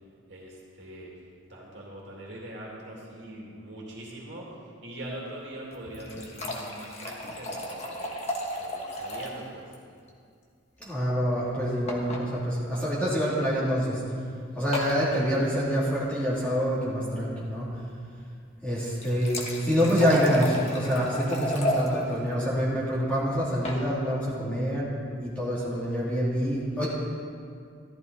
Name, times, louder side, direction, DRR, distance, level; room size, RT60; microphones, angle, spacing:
voice 1, 0.3-1.1 1.5-4.5 4.8-9.6, right 1 dB, 60° right, -4 dB, 2.5 m, -42 dB
sound 1, 5.7-9.4 9.7-9.8 10.1-10.2 11.9-12.2 13.2-13.4 14.7-15.0 18.8-21.9 23.3-23.8, left 1 dB, 30° left, 1.3 m, -33 dB
voice 2, 10.8-14.0 14.5-17.7 18.6-26.9, equal, 5° left, -8 dB, 2.8 m, -26 dB
14.0 x 12.0 x 4.1 m, 2.3 s
head